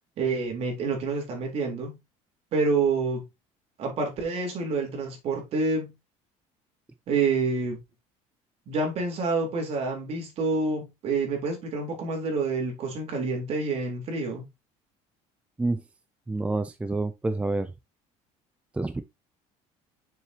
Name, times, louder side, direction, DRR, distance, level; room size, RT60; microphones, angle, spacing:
voice 1, 0.2-2.0 2.5-3.3 3.8-5.9 7.1-7.8 8.7-14.4, right 4 dB, 50° right, 4.0 m, -28 dB
voice 2, 16.3-17.7 18.7-19.0, right 2 dB, 10° right, 0.6 m, -28 dB
7.0 x 6.8 x 3.0 m
cardioid pair, 140°, 14 cm